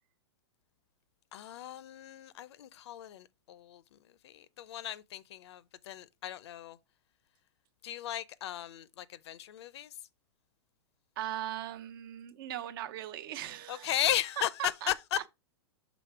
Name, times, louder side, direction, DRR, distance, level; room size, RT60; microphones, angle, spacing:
voice 1, 1.3-4.0 4.2-6.8 7.8-9.9 13.7-15.2, left 12 dB, 70° left, 0.6 m, -36 dB
voice 2, 11.2-14.0 14.6-14.9, right 12 dB, 50° right, 0.6 m, -39 dB
6.1 x 3.6 x 4.6 m
hypercardioid pair, 145°, 15 cm